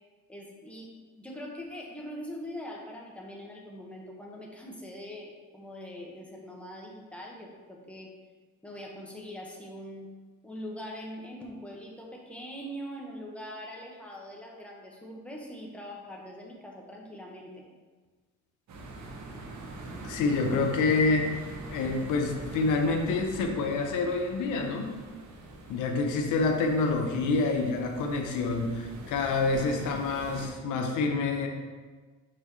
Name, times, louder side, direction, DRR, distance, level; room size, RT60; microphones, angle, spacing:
voice 1, 0.3-0.9 1.2-8.1 8.6-10.1 10.4-17.6, equal, 5° left, -2 dB, 1.3 m, -42 dB
sound 1, 18.7-30.5, right 2 dB, 65° right, 1.3 m, -43 dB
voice 2, 20.0-21.4 21.7-24.9 25.7-31.5, left 3 dB, 85° left, 3 dB, 0.8 m, -27 dB
6.3 x 6.1 x 3.1 m, 1.4 s
cardioid pair, 90°, 30 cm